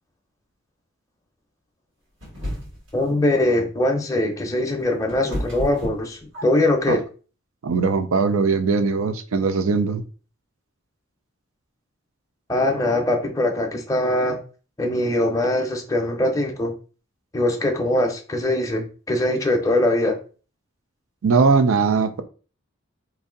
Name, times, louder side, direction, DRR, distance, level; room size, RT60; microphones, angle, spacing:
sound 1, 2.2-3.0 4.5-6.8, equal, 65° right, 1.9 m, -32 dB
voice 1, 2.9-7.0 12.5-14.4 14.8-16.7 17.3-20.2, left 1 dB, 15° left, 0.6 m, -22 dB
voice 2, 7.6-10.0 21.2-22.2, right 4 dB, 80° right, 0.5 m, -20 dB
3.1 x 2.6 x 3.7 m
head